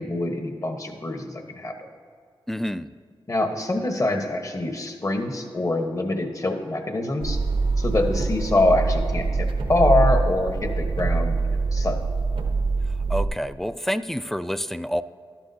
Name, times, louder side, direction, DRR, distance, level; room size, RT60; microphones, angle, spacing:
voice 1, 0.0-1.7 3.3-7.4 7.8-12.0, left 2 dB, 35° left, 5 dB, 1.1 m, -25 dB
voice 2, 2.5-2.9 13.1-15.0, equal, 5° left, 14 dB, 0.3 m, -28 dB
sound 1, 7.2-13.3, right 3 dB, 85° right, 0.8 m, -24 dB
12.0 x 11.5 x 2.7 m, 2.1 s
cardioid pair, 60°, 9 cm